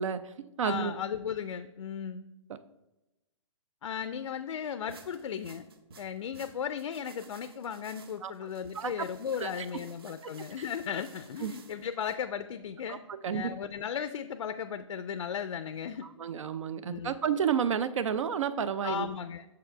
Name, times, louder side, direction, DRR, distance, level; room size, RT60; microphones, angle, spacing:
voice 1, 0.0-0.9 2.5-2.6 8.2-8.5 8.7-9.1 9.4-9.7 10.6-10.7 11.4-11.5 12.9-13.5 16.0-19.1, right 7 dB, 70° right, 13 dB, 0.4 m, -31 dB
voice 2, 0.6-2.3 3.8-5.7 6.0-13.0 13.3-16.1 16.9-17.2 18.8-19.5, left 8 dB, 80° left, 11 dB, 0.4 m, -36 dB
sound 1, 4.9-12.2, right 5 dB, 45° right, 0.8 m, -55 dB
6.8 x 4.9 x 4.4 m, 0.98 s
hypercardioid pair, 175°, 17 cm